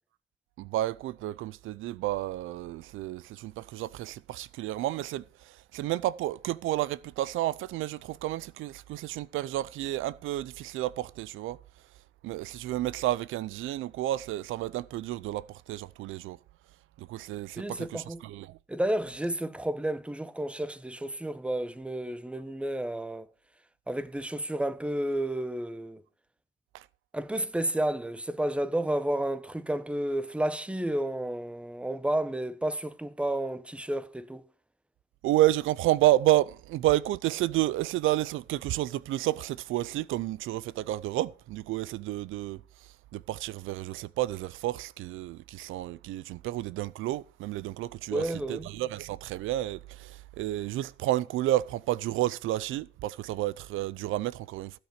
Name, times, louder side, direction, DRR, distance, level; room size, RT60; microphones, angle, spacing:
voice 1, 0.6-11.6 12.2-16.4 17.0-18.6 26.7-26.8 35.2-42.6 43.1-54.8, right 15 dB, 85° right, 0.5 m, -30 dB
voice 2, 17.6-18.2 18.7-23.3 23.9-26.0 27.1-34.4 48.1-48.7, right 1 dB, 5° right, 0.9 m, -31 dB
15.5 x 6.0 x 5.8 m
cardioid pair, 90°, 20 cm